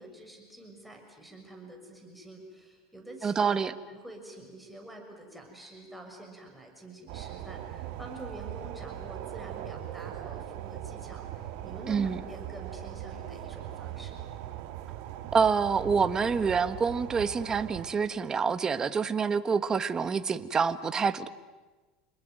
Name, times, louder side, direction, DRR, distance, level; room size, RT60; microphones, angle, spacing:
voice 1, 0.0-3.5 3.9-14.3, right 1 dB, ahead, 1 dB, 6.6 m, -47 dB
voice 2, 3.2-3.7 11.9-12.2 15.3-21.3, right 5 dB, 25° right, 11 dB, 1.3 m, -27 dB
sound 1, 7.1-17.9, right 12 dB, 70° right, 2.3 m, -40 dB
28.5 x 21.0 x 9.4 m, 1.2 s
supercardioid pair, 120°, 3 cm